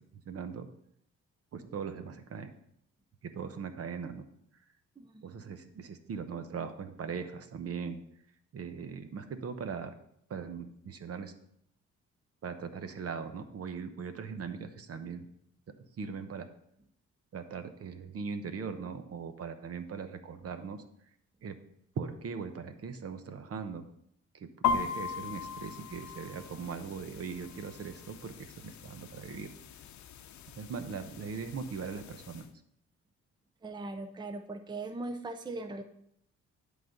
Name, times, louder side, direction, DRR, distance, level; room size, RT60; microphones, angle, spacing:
voice 1, 0.3-0.7 1.5-2.5 3.3-4.2 5.2-8.0 8.5-10.0 10.3-11.3 12.4-15.3 16.0-16.5 17.3-20.8 21.4-21.5 22.0-23.8 24.3-29.5 30.6-32.5, right 6 dB, 50° right, 9 dB, 0.9 m, -40 dB
voice 2, 5.0-5.6 33.6-35.8, right 2 dB, 15° right, 8 dB, 0.6 m, -40 dB
sound 1, 24.6-32.5, left 6 dB, 70° left, 0.7 m, -38 dB
10.5 x 4.1 x 5.2 m, 0.72 s
cardioid pair, 90°, 30 cm